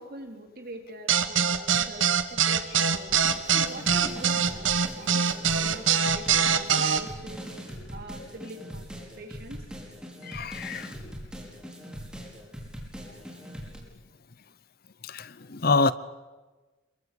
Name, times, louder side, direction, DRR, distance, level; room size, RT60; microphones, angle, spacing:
voice 1, 0.0-3.2 3.5-4.7 5.0-7.5 7.9-8.8 9.2-9.6, right 1 dB, 50° right, 3.7 m, -43 dB
sound 1, 1.1-7.0, right 7 dB, 80° right, 1.6 m, -23 dB
sound 2, 3.1-13.8, equal, 5° right, 5.6 m, -41 dB
voice 2, 10.3-10.9 15.1-15.9, left 3 dB, 50° left, 0.8 m, -26 dB
27.0 x 22.5 x 8.5 m
head